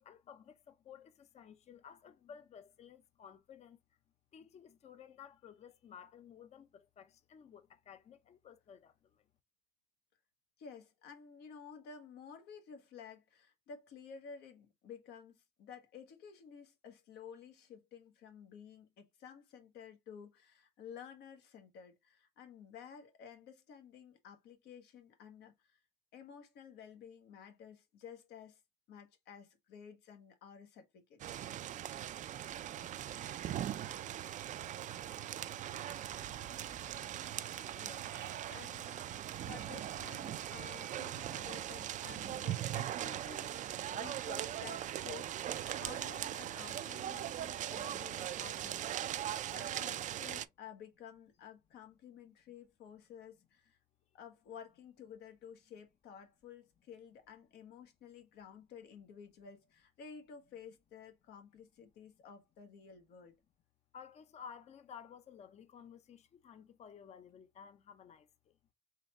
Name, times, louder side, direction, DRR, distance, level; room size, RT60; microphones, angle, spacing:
voice 1, 0.0-3.8 4.3-9.2 63.9-68.5, left 7 dB, 40° left, 0.6 m, -55 dB
voice 2, 10.6-25.8 26.1-28.6 28.9-31.5 37.8-38.2 38.5-53.8 54.1-63.3, left 7 dB, 80° left, 1.1 m, -53 dB
sound 1, 31.2-50.4, right 11 dB, 45° right, 0.4 m, -40 dB
sound 2, 36.1-37.0 37.9-38.6 39.5-40.4 41.7-42.5, right 10 dB, 75° right, 1.0 m, -52 dB
3.9 x 3.1 x 3.1 m
cardioid pair, 110°, 17 cm